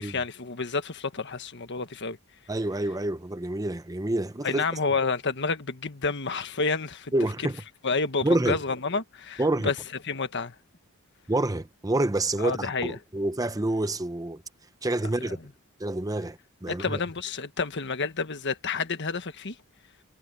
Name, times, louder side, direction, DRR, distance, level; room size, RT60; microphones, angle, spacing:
voice 1, 0.0-2.2 4.4-7.1 7.8-9.7 10.0-10.5 12.4-13.0 15.2-15.4 16.7-19.6, left 4 dB, 55° left, 1.4 m, -29 dB
voice 2, 2.5-4.6 7.1-7.6 8.2-8.6 9.4-9.7 11.3-14.4 14.8-15.4 15.8-17.0, right 2 dB, 15° right, 0.7 m, -27 dB
head